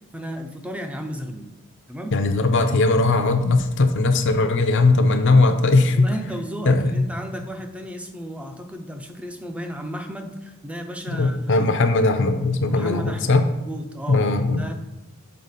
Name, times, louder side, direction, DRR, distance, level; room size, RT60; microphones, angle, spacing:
voice 1, 0.1-1.5 1.9-2.2 5.9-11.9 12.7-14.7, equal, 5° right, 5 dB, 0.5 m, -34 dB
voice 2, 2.1-6.1 6.7-7.0 11.1-13.4 14.1-14.6, left 3 dB, 55° left, 8 dB, 0.6 m, -19 dB
6.5 x 4.2 x 4.1 m, 1.0 s
head